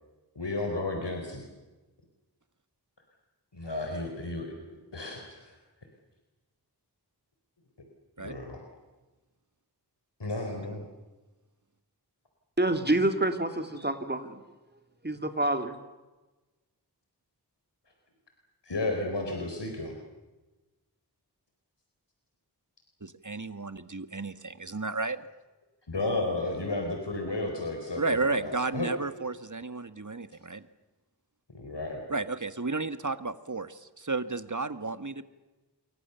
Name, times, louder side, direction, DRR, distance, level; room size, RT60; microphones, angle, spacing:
voice 1, 0.4-1.4 3.5-4.5 4.9-5.5 8.2-8.6 10.2-10.8 18.7-19.9 25.9-28.9 31.5-32.0, left 2 dB, 85° left, 3 dB, 4.2 m, -33 dB
voice 2, 12.6-14.4 15.0-15.8, right 1 dB, 25° right, 7 dB, 2.9 m, -27 dB
voice 3, 23.0-25.2 28.0-30.6 32.1-35.2, right 3 dB, 45° right, 12 dB, 1.6 m, -32 dB
28.5 x 24.0 x 7.0 m, 1.1 s
wide cardioid pair, 50°, 41 cm